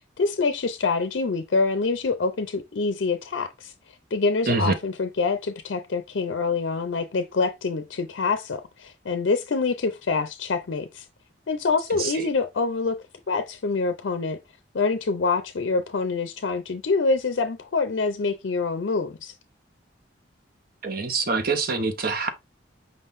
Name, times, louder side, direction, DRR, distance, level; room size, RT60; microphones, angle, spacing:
voice 1, 0.2-3.7 4.1-11.0 11.5-13.0 13.3-14.4 14.7-19.3, left 4 dB, 65° left, 0.5 m, -26 dB
voice 2, 20.8-22.3, right 4 dB, 50° right, 0.7 m, -25 dB
5.1 x 3.7 x 2.6 m
head